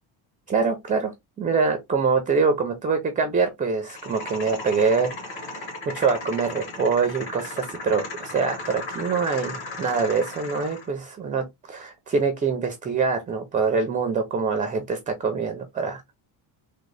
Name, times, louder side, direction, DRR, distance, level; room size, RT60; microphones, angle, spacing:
voice 1, 0.5-1.1 1.4-5.7 5.9-16.1, right 5 dB, 20° right, 0.3 m, -24 dB
sound 1, 3.9-10.9, left 2 dB, 65° left, 2.0 m, -36 dB
3.7 x 2.0 x 3.1 m
cardioid pair, 130°, 47 cm